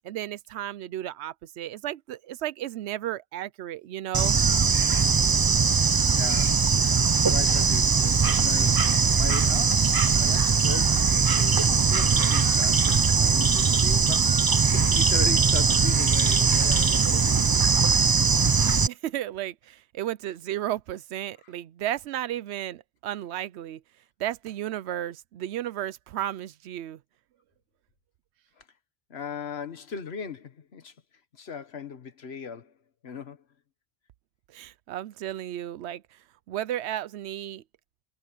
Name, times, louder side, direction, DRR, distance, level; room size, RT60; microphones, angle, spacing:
voice 1, 0.0-4.4 18.9-23.8 24.2-27.0 34.5-36.0 36.5-37.6, right 12 dB, 85° right, 0.8 m, -33 dB
Bird / Insect, 4.1-18.9, right 5 dB, 35° right, 0.3 m, -21 dB
voice 2, 6.1-6.7 7.3-17.7 21.4-21.5 28.6-28.7 29.1-30.9 31.3-32.7 33.0-33.4, left 6 dB, 70° left, 1.5 m, -39 dB
omnidirectional pair, 1.1 m